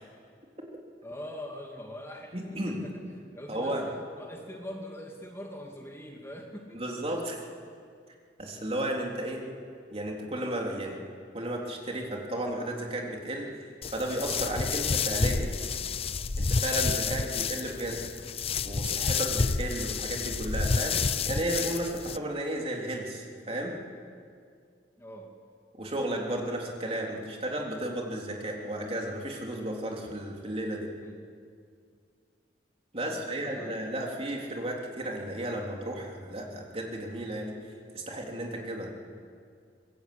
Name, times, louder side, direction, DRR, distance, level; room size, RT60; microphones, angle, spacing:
voice 1, 1.0-6.8 17.0-17.6 25.0-25.4 30.9-31.2 33.0-33.7, equal, 15° left, 1 dB, 2.2 m, -43 dB
voice 2, 2.3-2.8 3.5-3.9 6.7-7.4 8.4-9.4 9.9-11.0 11.3-15.5 16.4-18.0 18.6-23.8 25.8-30.9 32.9-37.5 37.9-38.9, right 1 dB, 35° right, 0 dB, 3.5 m, -33 dB
sound 1, 13.8-22.2, left 5 dB, 35° left, 0.6 m, -29 dB
24.5 x 20.5 x 8.7 m, 2.2 s
head